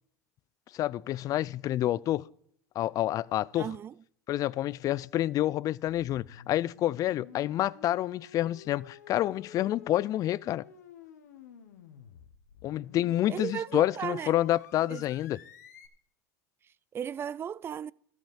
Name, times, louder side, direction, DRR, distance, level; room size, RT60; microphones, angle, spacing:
voice 1, 0.7-2.2 2.8-3.7 4.3-10.6 12.6-15.4, left 13 dB, 40° left, 0.4 m, -28 dB
voice 2, 3.6-3.9 13.3-14.3 14.9-15.1 16.9-17.9, right 8 dB, 25° right, 0.3 m, -35 dB
sound 1, 5.9-15.9, left 8 dB, 90° left, 1.2 m, -51 dB
13.0 x 5.9 x 6.9 m
hypercardioid pair, 95°, 9 cm